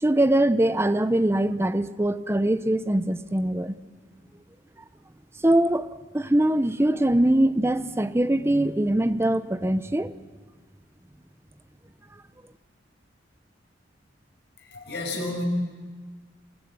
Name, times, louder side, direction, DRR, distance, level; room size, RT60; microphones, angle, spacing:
voice 1, 0.0-3.8 5.4-5.9 6.1-10.1, right 1 dB, 15° right, 12 dB, 0.7 m, -22 dB
voice 2, 14.6-15.4, left 2 dB, 65° left, 1 dB, 6.5 m, -32 dB
25.0 x 15.0 x 9.0 m, 1.4 s
head